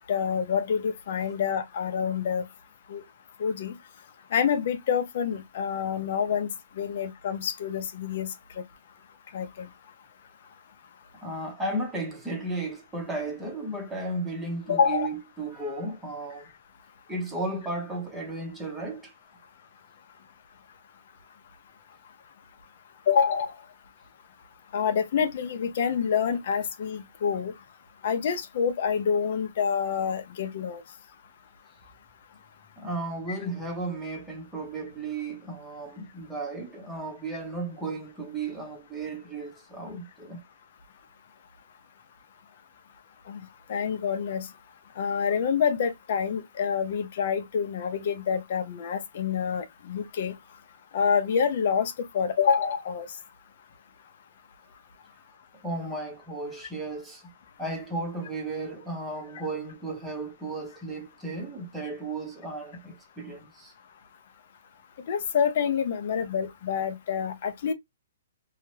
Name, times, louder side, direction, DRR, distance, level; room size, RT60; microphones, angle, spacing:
voice 1, 0.1-2.5 2.9-3.0 3.4-3.7 4.3-6.5 6.8-8.3 9.3-9.7 14.7-15.1 23.1-23.5 24.7-27.5 28.0-30.8 33.3-33.4 43.3-43.4 43.7-44.5 45.0-50.3 50.9-53.1 65.1-67.7, left 7 dB, 50° left, 0.6 m, -27 dB
voice 2, 11.2-16.5 17.1-19.1 32.8-40.4 55.5-57.3 57.6-63.7, right 2 dB, 10° right, 0.8 m, -34 dB
2.8 x 2.2 x 3.2 m
hypercardioid pair, 160°, 0 cm